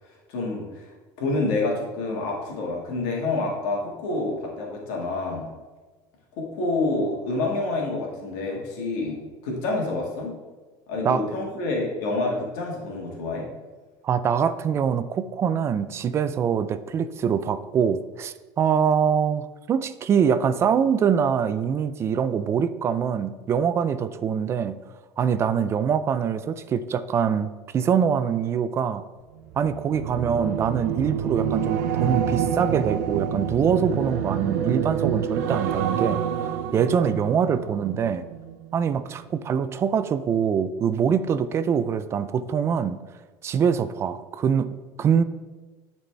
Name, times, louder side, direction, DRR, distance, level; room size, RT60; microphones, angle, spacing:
voice 1, 0.3-0.9 1.2-5.5 6.3-10.4 10.9-13.5, left 2 dB, 75° left, -1 dB, 1.8 m, -28 dB
voice 2, 14.0-24.8 25.2-29.0 29.6-38.3 38.7-43.0 43.4-45.2, right 7 dB, 30° right, 13 dB, 0.3 m, -24 dB
sound 1, 29.5-38.9 39.2-39.5, right 8 dB, 90° right, 0.5 m, -27 dB
11.0 x 4.1 x 3.4 m, 1.3 s
cardioid pair, 140°, 9 cm